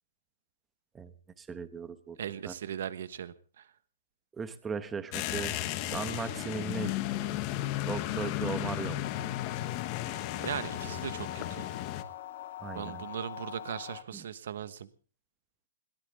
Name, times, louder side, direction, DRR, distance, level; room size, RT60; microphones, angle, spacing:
voice 1, 1.4-2.2 2.4-2.5 4.4-6.9 7.8-9.1 12.6-13.1 14.1-14.2, right 5 dB, 10° right, 12 dB, 1.0 m, -37 dB
voice 2, 2.2-3.7 10.4-11.7 12.7-14.9, right 9 dB, 60° right, 14 dB, 1.3 m, -38 dB
sound 1, 5.1-12.0, left 14 dB, 25° left, 1.2 m, -34 dB
sound 2, 9.0-14.0, left 12 dB, 45° left, 2.1 m, -43 dB
21.5 x 18.0 x 3.7 m, 0.39 s
hypercardioid pair, 170°, 0 cm